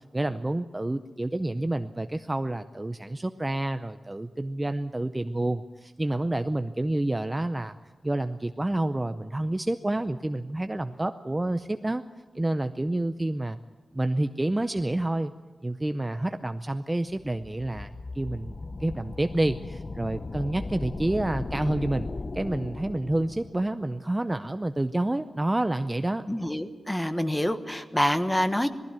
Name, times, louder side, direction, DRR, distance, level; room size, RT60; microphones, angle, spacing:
voice 1, 0.1-7.7 8.0-12.0 12.3-13.6 13.9-15.3 15.6-26.2, right 1 dB, 20° right, 9 dB, 0.6 m, -29 dB
sound 1, 17.2-23.7, left 3 dB, 40° left, 0.8 m, -37 dB
voice 2, 26.3-28.7, equal, 10° left, 10 dB, 1.2 m, -26 dB
19.5 x 15.0 x 9.5 m, 1.4 s
wide cardioid pair, 110°, 0 cm